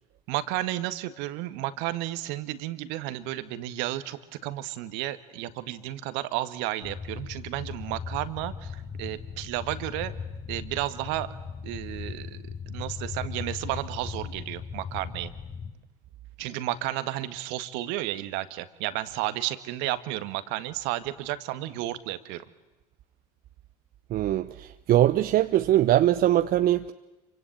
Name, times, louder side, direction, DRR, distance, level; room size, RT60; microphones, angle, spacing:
voice 1, 0.3-10.1 10.5-11.3 11.6-12.4 12.7-15.3 16.4-22.4, right 15 dB, 65° right, 12 dB, 1.8 m, -32 dB
sound 1, 6.8-15.7, left 6 dB, 40° left, 4.2 m, -38 dB
voice 2, 24.1-26.9, right 13 dB, 45° right, 11 dB, 0.9 m, -22 dB
27.0 x 25.0 x 8.8 m, 1.1 s
hypercardioid pair, 75°, 20 cm